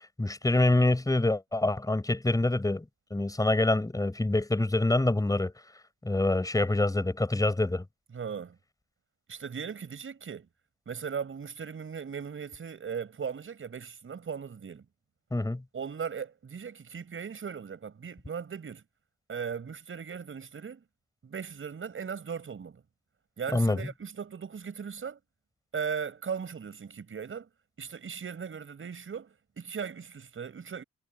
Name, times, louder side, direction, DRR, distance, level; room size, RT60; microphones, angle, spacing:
voice 1, 0.2-2.8 3.1-5.5 6.0-7.8 15.3-15.6 23.5-23.8, left 2 dB, 10° left, 4.7 m, -26 dB
voice 2, 8.1-8.6 9.3-10.5 10.9-14.8 15.7-18.8 19.3-20.8 21.2-22.8 23.4-25.2 25.7-27.5 27.8-30.8, right 6 dB, 45° right, 5.9 m, -38 dB
cardioid pair, 90°, 30 cm